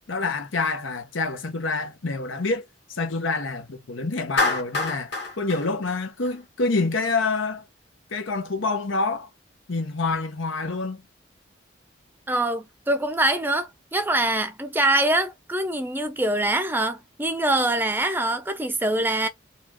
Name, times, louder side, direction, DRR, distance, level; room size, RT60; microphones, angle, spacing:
voice 1, 0.1-2.6 2.9-7.6 8.1-9.3 9.7-11.0, left 3 dB, 90° left, 0.9 m, -27 dB
Clapping, 4.4-6.7, left 3 dB, 55° left, 1.4 m, -27 dB
voice 2, 12.3-19.3, right 1 dB, 10° right, 0.4 m, -24 dB
4.2 x 2.4 x 2.9 m
head